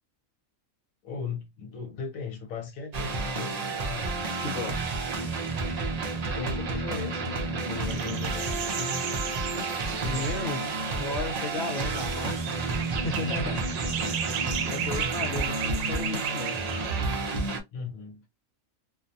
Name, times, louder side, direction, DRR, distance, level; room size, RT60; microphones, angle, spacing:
voice 1, 1.0-4.1 6.2-9.0 9.8-10.2 17.7-18.3, left 5 dB, 80° left, 1.1 m, -38 dB
sound 1, 2.9-17.6, right 3 dB, 50° right, 0.4 m, -30 dB
voice 2, 4.4-4.8 10.0-10.6 11.0-12.6 13.0-13.6 14.1-14.4 14.6-16.6, left 3 dB, 50° left, 1.1 m, -35 dB
sound 2, 7.9-17.0, right 8 dB, 75° right, 0.9 m, -36 dB
2.6 x 2.1 x 2.6 m
omnidirectional pair, 1.4 m